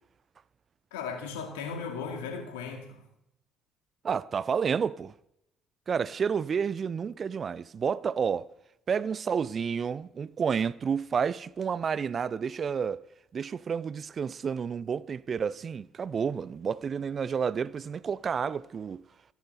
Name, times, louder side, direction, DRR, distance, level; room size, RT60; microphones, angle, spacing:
voice 1, 0.9-3.0, left 5 dB, 75° left, 2.4 m, -36 dB
voice 2, 4.0-5.1 5.9-8.5 8.9-13.0 13.3-19.0, right 6 dB, 40° right, 0.5 m, -30 dB
14.0 x 13.5 x 4.1 m
hypercardioid pair, 55°, 0 cm